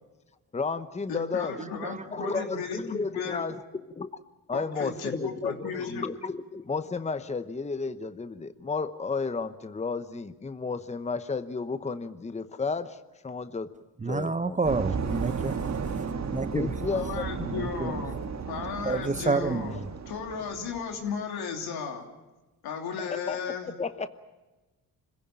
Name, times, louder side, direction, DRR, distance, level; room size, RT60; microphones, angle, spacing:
voice 1, 0.5-1.6 2.1-3.6 3.9-4.1 4.5-13.0 13.2-13.7 14.1-14.6 16.5-17.5 23.0-24.1, left 4 dB, 20° left, 12 dB, 0.9 m, -32 dB
voice 2, 1.1-3.4 4.5-6.0 16.8-18.2 18.5-22.1 22.6-23.7, left 6 dB, 85° left, 3 dB, 3.3 m, -35 dB
voice 3, 14.0-15.6 16.3-16.7 17.5-17.9 18.8-19.7, right 3 dB, 20° right, 13 dB, 0.9 m, -29 dB
sound 1, 14.6-21.0, right 5 dB, 45° right, 1.7 m, -34 dB
26.0 x 16.0 x 9.0 m, 1.1 s
cardioid pair, 80°, 37 cm